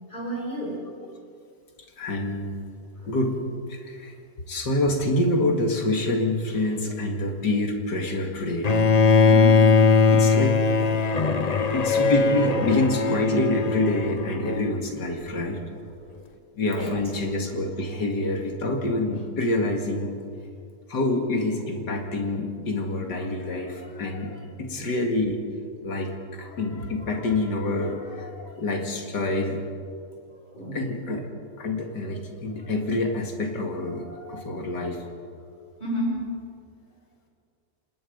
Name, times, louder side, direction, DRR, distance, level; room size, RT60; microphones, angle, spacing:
voice 1, 0.1-0.9 3.0-3.2 9.2-9.8 12.6-12.8 16.1-16.2 16.7-17.0 24.6-24.9 30.5-30.8 33.8-34.5 35.8-36.5, right 1 dB, 25° left, -3 dB, 6.0 m, -32 dB
voice 2, 2.0-2.6 3.1-3.4 3.7-4.1 4.5-8.8 10.1-11.0 11.7-15.6 16.6-20.1 20.9-25.4 25.8-29.6 30.7-31.2 31.6-35.0, left 2 dB, 80° left, 3 dB, 2.8 m, -27 dB
Bowed string instrument, 8.6-14.7, left 4 dB, 40° left, 0.5 m, -20 dB
26.5 x 20.0 x 5.3 m, 2.3 s
omnidirectional pair, 1.8 m